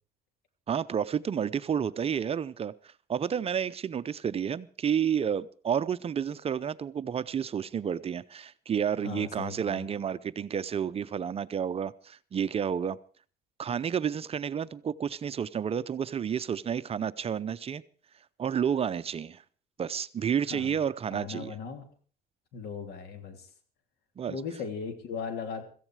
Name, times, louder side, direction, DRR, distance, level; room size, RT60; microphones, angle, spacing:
voice 1, 0.7-2.7 3.1-13.0 13.6-17.8 18.4-19.4 19.8-21.5 24.2-24.4, right 8 dB, 35° right, 0.6 m, -30 dB
voice 2, 9.0-9.9 20.5-20.8 21.1-21.8 22.5-23.5 24.3-25.6, left 6 dB, 70° left, 3.2 m, -38 dB
16.5 x 15.0 x 4.8 m
cardioid pair, 110°, 17 cm